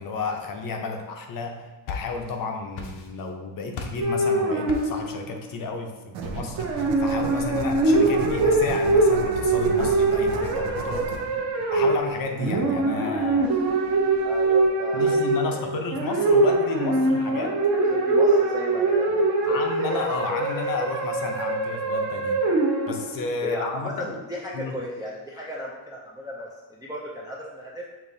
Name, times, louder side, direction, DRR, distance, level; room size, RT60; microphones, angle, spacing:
voice 1, 0.0-11.1 11.7-13.5 14.9-17.6 19.1-19.2 19.5-22.4 22.9-24.1 24.5-24.8, left 4 dB, 45° left, 3 dB, 0.6 m, -32 dB
sound 1, 1.5-2.4 2.7-3.4 3.7-4.1 4.7-5.1, left 5 dB, 85° left, 0.9 m, -36 dB
sound 2, 4.0-5.4 6.6-23.3, right 2 dB, 40° right, 0.8 m, -23 dB
sound 3, 6.1-14.7, right 4 dB, 75° right, 0.7 m, -36 dB
voice 2, 14.2-15.8 17.9-19.1 19.5-19.6 23.4-27.8, equal, 10° right, -4 dB, 0.3 m, -35 dB
6.7 x 3.0 x 2.6 m, 1.2 s
cardioid pair, 155°, 48 cm